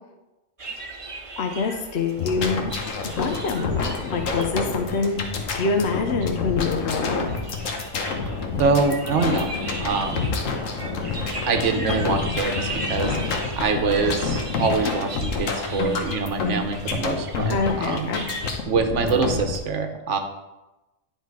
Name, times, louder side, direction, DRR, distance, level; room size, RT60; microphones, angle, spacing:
sound 1, 0.6-18.5, right 2 dB, 30° right, 0.8 m, -38 dB
voice 1, 1.4-2.7 3.0-7.2 17.5-18.2, left 4 dB, 60° left, 5 dB, 0.9 m, -26 dB
sound 2, 2.2-19.6, left 4 dB, 85° left, 1.3 m, -28 dB
voice 2, 8.6-9.5 9.8-10.3 11.5-13.2 13.6-18.1 18.7-20.2, right 4 dB, 70° right, 6 dB, 1.2 m, -24 dB
9.8 x 4.4 x 4.7 m, 1.0 s
omnidirectional pair, 1.3 m